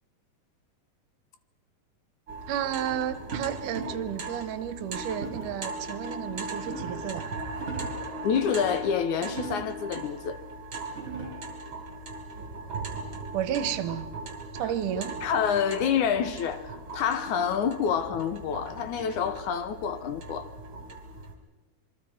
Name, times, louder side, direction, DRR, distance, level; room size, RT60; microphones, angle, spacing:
sound 1, 2.3-21.3, right 2 dB, 40° right, 3.2 m, -39 dB
voice 1, 2.5-7.3 13.3-14.1 14.5-15.1, right 10 dB, 75° right, 2.4 m, -32 dB
sound 2, 3.3-4.1 5.2-5.6 6.3-7.1 7.5-8.1 9.2-9.9 10.5-10.6 10.8-11.6 12.9-14.1, right 4 dB, 20° right, 5.3 m, -40 dB
voice 2, 8.2-10.4 14.9-20.5, left 7 dB, 75° left, 2.4 m, -28 dB
27.0 x 22.5 x 5.0 m
omnidirectional pair, 3.7 m